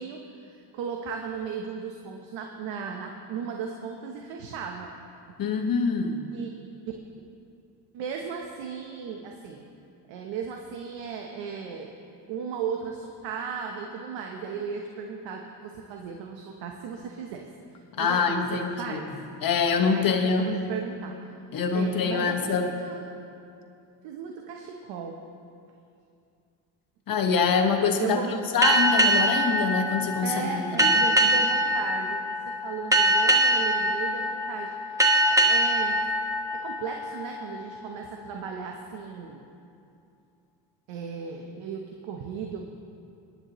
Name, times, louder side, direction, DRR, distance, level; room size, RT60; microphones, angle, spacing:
voice 1, 0.0-4.9 6.3-6.5 7.9-9.7 10.1-12.0 12.3-17.5 18.0-19.1 19.9-21.1 21.7-23.0 24.0-25.2 28.0-28.5 30.2-36.0 36.5-39.5 40.9-42.6, right 6 dB, 85° right, 2 dB, 1.1 m, -36 dB
voice 2, 5.4-6.3 18.0-19.0 19.4-20.5 21.5-22.7 27.1-28.2 28.5-30.9, left 5 dB, 50° left, 3 dB, 1.6 m, -25 dB
sound 1, 28.6-37.8, right 1 dB, 5° right, 1.1 m, -24 dB
23.5 x 9.7 x 3.1 m, 2.5 s
cardioid pair, 90°, 44 cm